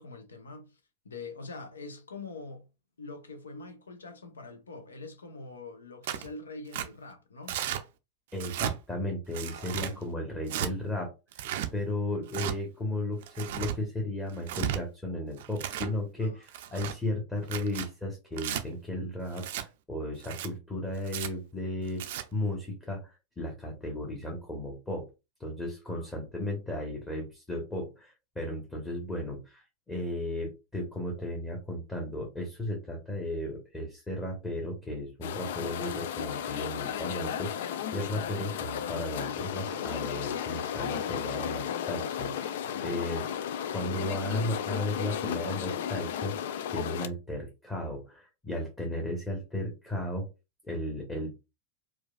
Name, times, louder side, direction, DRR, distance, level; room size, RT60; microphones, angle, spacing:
voice 1, 0.0-2.7 3.0-7.6 9.4-10.0 16.2-16.5 25.9-26.1 42.6-42.9, left 3 dB, 70° left, 0.7 m, -44 dB
Tearing, 6.0-6.3 6.7-6.9 7.5-7.8 8.3-8.7 9.3-9.9 10.5-10.7 11.3-11.7 12.3-12.6 13.2-13.8 14.3-14.8 15.4-15.9 16.5-17.0 17.4-17.9 18.4-18.6 19.4-19.7 20.2-20.5 21.1-21.3 21.9-22.2, right 11 dB, 55° right, 0.4 m, -34 dB
voice 2, 8.3-11.1 11.7-22.1 22.3-25.1 25.4-43.3 43.7-46.4 46.7-50.3 50.6-51.5, left 1 dB, 15° left, 1.0 m, -35 dB
sound 1, 35.2-47.1, left 9 dB, 55° left, 0.3 m, -34 dB
4.5 x 2.3 x 2.3 m
figure-of-eight pair, 90°, 0 cm